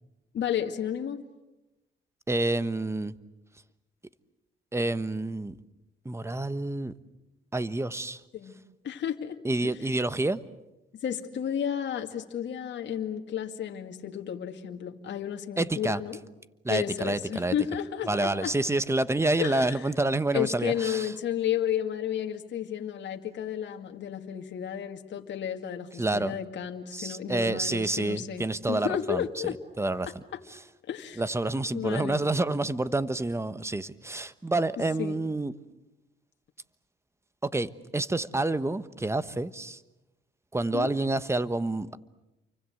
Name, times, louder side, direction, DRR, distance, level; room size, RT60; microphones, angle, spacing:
voice 1, 0.3-1.2 8.3-8.5 8.8-9.4 9.6-9.9 11.0-16.2 16.7-18.5 19.4-19.9 20.3-29.6 30.3-30.4 30.9-31.2 31.7-32.2 35.0-35.2 40.7-40.9, left 9 dB, 65° left, 3 dB, 2.2 m, -32 dB
voice 2, 2.3-3.1 4.7-5.6 6.0-6.9 7.5-8.2 9.4-10.4 15.6-16.0 16.6-17.5 18.1-21.1 26.0-26.3 26.9-29.2 29.8-30.1 31.2-35.5 37.4-39.8 40.5-42.0, right 2 dB, 15° right, 14 dB, 1.2 m, -28 dB
29.0 x 24.5 x 7.9 m, 0.98 s
cardioid pair, 90°, 20 cm